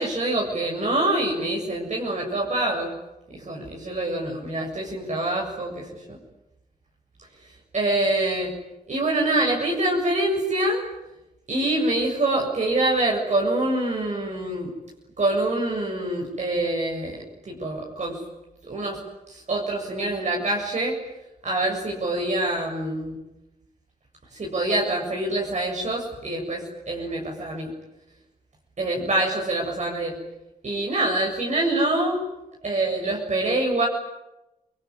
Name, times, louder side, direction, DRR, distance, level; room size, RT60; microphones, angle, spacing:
voice 1, 0.0-2.9 3.3-6.2 7.7-8.5 8.9-10.8 11.5-14.7 15.2-18.2 18.7-19.0 19.3-21.0 21.4-23.2 24.3-27.7 28.8-30.2 30.6-32.2 32.6-33.9, right 2 dB, 50° right, -1 dB, 7.5 m, -25 dB
29.0 x 21.0 x 9.8 m, 0.93 s
cardioid pair, 75°, 15 cm